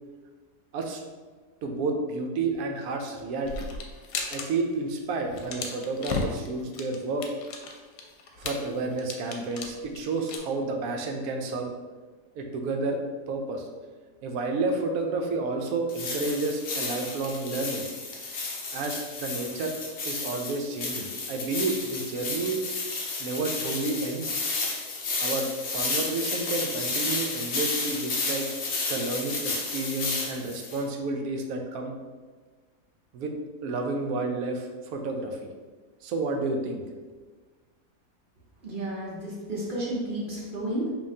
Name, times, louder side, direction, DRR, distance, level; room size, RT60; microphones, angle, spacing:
voice 1, 1.6-3.7 4.3-7.2 8.4-11.7 12.3-13.0 13.3-13.7 14.2-17.8 18.7-19.7 20.1-22.6 23.2-24.4 25.2-25.5 25.7-28.5 28.9-31.9 33.1-33.3 33.6-35.5 36.0-36.8, right 3 dB, 70° right, 3 dB, 1.0 m, -30 dB
sound 1, 3.4-4.4 4.7-4.9 5.2-10.4, left 4 dB, 85° left, 1.2 m, -35 dB
sound 2, 15.9-30.8, left 3 dB, 55° left, 0.8 m, -32 dB
voice 2, 38.6-40.9, right 1 dB, 50° right, -4 dB, 0.7 m, -32 dB
5.2 x 2.8 x 2.7 m, 1.4 s
omnidirectional pair, 1.7 m